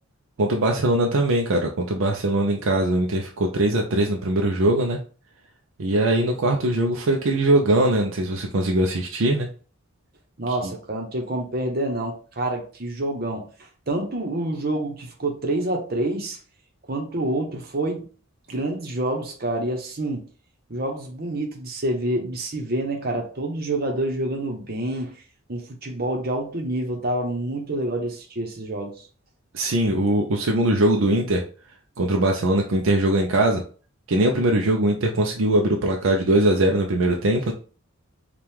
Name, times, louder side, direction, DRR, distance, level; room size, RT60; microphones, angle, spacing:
voice 1, 0.4-5.0 5.8-9.5 10.5-10.7 29.5-31.4 32.0-33.6 34.1-37.5, right 1 dB, 70° right, 0.5 m, -21 dB
voice 2, 10.4-13.5 13.9-16.4 16.9-18.1 18.5-20.2 20.7-25.1 25.5-29.1, right 1 dB, 45° right, 0.9 m, -27 dB
4.5 x 2.4 x 3.5 m
head